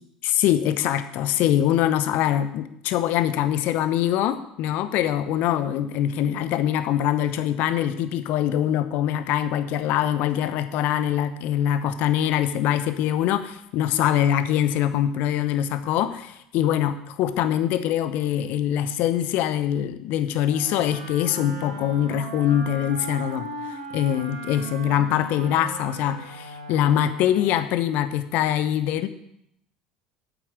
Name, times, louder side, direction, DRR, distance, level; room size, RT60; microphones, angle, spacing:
voice 1, 0.2-23.5 23.9-29.1, left 11 dB, 55° left, 11 dB, 0.9 m, -23 dB
Wind instrument woodwind instrument, 20.4-27.8, right 2 dB, 90° right, 1.9 m, -37 dB
9.0 x 8.4 x 6.6 m, 0.77 s
figure-of-eight pair, 65°, 3 cm